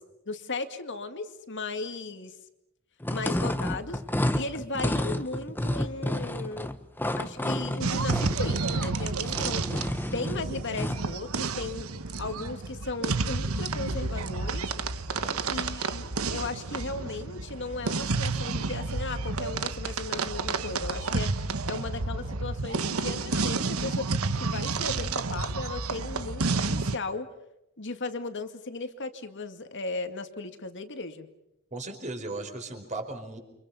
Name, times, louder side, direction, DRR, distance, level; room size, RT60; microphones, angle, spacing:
voice 1, 0.3-2.3 3.1-4.0 4.3-6.7 7.2-9.6 10.0-11.9 12.2-14.7 15.5-27.3 27.8-31.3, left 3 dB, 60° left, 8 dB, 2.2 m, -36 dB
sound 1, 3.0-11.1, left 1 dB, 10° left, 1.2 m, -31 dB
sound 2, 7.8-27.0, right 3 dB, 80° right, 1.2 m, -30 dB
voice 2, 15.1-15.4 31.7-33.4, right 2 dB, 35° right, 4 dB, 4.9 m, -37 dB
30.0 x 26.0 x 5.8 m, 0.87 s
head